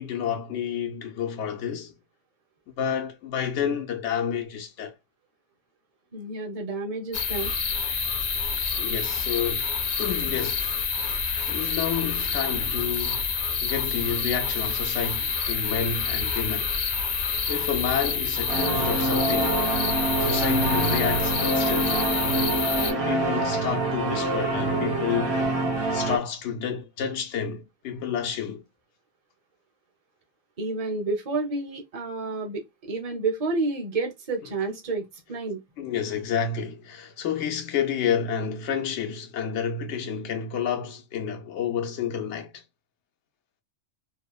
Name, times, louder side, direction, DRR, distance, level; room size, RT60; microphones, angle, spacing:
voice 1, 0.0-1.9 2.8-4.9 8.8-9.7 10.0-10.9 11.5-13.3 13.6-16.7 17.5-19.6 20.2-22.1 23.0-25.5 25.9-28.6 35.8-42.6, left 7 dB, 90° left, 0.9 m, -30 dB
voice 2, 6.1-7.5 30.6-35.6, right 3 dB, 35° right, 0.7 m, -30 dB
sound 1, 7.1-22.9, left 5 dB, 55° left, 0.5 m, -28 dB
sound 2, 18.5-26.2, right 2 dB, 65° right, 1.2 m, -25 dB
3.0 x 2.0 x 2.2 m
omnidirectional pair, 1.2 m